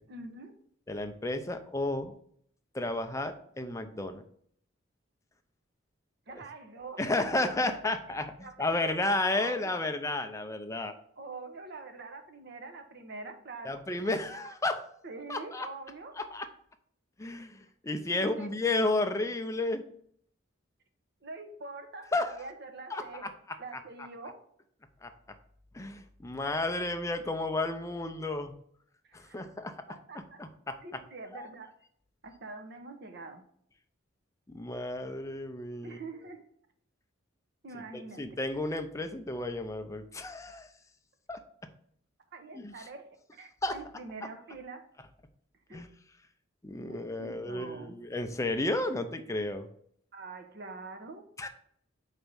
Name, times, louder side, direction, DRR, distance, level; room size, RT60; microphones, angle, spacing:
voice 1, 0.1-0.5 6.3-7.4 8.4-9.8 11.2-14.4 15.0-16.1 18.1-18.6 19.0-19.1 21.2-23.3 23.6-24.4 29.1-29.4 29.9-30.4 30.8-31.8 32.2-33.4 35.8-36.4 37.6-38.4 42.3-44.9 45.7-45.8 46.9-48.0 50.1-51.2, right 3 dB, 55° right, 7 dB, 0.9 m, -45 dB
voice 2, 0.9-2.1 2.7-4.2 7.0-10.9 13.6-14.8 15.3-15.7 16.2-16.5 17.2-19.8 22.1-22.4 22.9-23.6 25.0-25.1 25.7-28.5 29.1-29.7 30.4-30.8 31.3-31.5 34.5-36.0 37.9-40.7 41.3-41.4 42.5-42.9 43.6-43.8 45.7-45.9 46.6-49.7 51.4-51.5, left 2 dB, 15° left, 7 dB, 0.5 m, -32 dB
4.5 x 4.1 x 5.3 m, 0.65 s
head